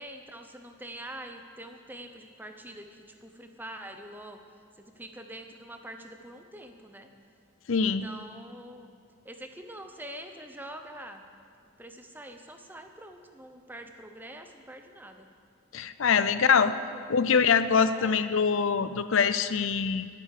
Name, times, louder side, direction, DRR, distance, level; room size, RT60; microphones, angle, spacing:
voice 1, 0.0-4.4 4.8-7.1 7.8-8.9 9.2-11.2 11.8-15.3 16.2-17.0 17.9-18.2, right 1 dB, 10° right, 5 dB, 0.9 m, -45 dB
voice 2, 7.7-8.1 15.7-16.7 17.1-20.1, left 6 dB, 65° left, 12 dB, 0.5 m, -24 dB
20.5 x 9.3 x 6.7 m, 2.2 s
head